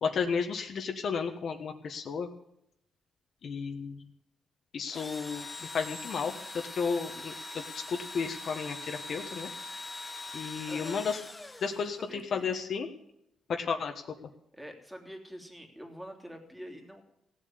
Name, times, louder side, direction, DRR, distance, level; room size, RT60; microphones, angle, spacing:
voice 1, 0.0-2.3 3.4-4.0 4.7-6.3 6.7-9.5 10.3-11.2 11.6-12.9 13.5-13.9, left 5 dB, 55° left, 4 dB, 1.4 m, -33 dB
Engine / Drill, 4.9-12.2, left 2 dB, 15° left, 1.1 m, -42 dB
voice 2, 10.7-11.1 12.0-12.5 14.5-17.0, equal, 5° right, 3 dB, 3.0 m, -45 dB
17.0 x 7.7 x 9.7 m, 0.77 s
cardioid pair, 120°, 0 cm